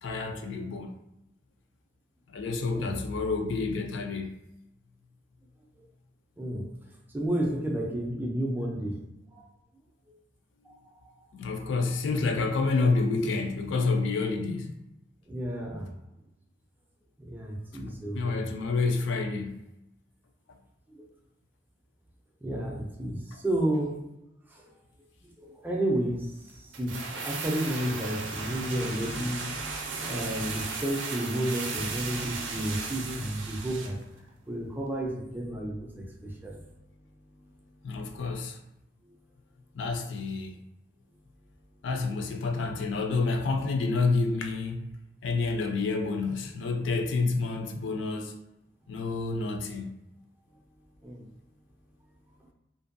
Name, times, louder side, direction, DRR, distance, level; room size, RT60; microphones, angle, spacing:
voice 1, 0.0-0.9 2.3-4.3 11.3-14.7 18.1-19.5 37.8-38.6 39.7-40.6 41.8-44.9 45.2-48.3 48.9-49.9, left 3 dB, 70° left, 4 dB, 0.3 m, -28 dB
voice 2, 6.4-6.7 7.1-9.4 10.7-10.8 15.3-15.9 17.2-18.4 20.9-21.0 22.4-24.0 24.5-24.6 25.2-27.0 27.2-34.0 34.5-36.6 51.0-51.2, right 1 dB, 10° right, -1 dB, 0.4 m, -32 dB
sound 1, 26.7-34.0 34.3-34.4, right 4 dB, 75° right, 0.4 m, -36 dB
2.6 x 2.2 x 2.5 m, 0.88 s
head